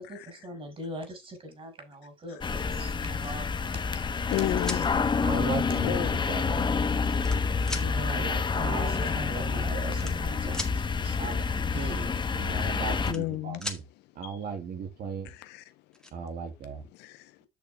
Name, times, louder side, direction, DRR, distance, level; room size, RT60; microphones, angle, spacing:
voice 1, 0.0-4.0 4.7-4.8 5.7-6.1 7.6-11.4 11.7-12.0, equal, 35° right, 4.5 m, -41 dB
sound 1, 2.4-13.1, left 5 dB, 25° left, 1.1 m, -28 dB
sound 2, 4.2-4.8 5.8-5.9 6.7-7.4 7.7-7.9 9.0-9.1 9.3-9.5 9.9-10.7 12.6-13.4 13.6-13.8 15.3-15.4 15.7-16.1, left 1 dB, 5° left, 1.8 m, -38 dB
voice 2, 4.3-5.0 5.8-6.1 13.1-13.6 14.2-14.4 15.2-15.6 17.0-17.3, left 18 dB, 90° left, 0.6 m, -32 dB
voice 3, 5.1-6.7 8.0-10.1 11.2-13.8 14.1-15.3 16.1-16.9, right 6 dB, 65° right, 2.5 m, -37 dB
8.4 x 6.5 x 3.3 m
cardioid pair, 110°, 17 cm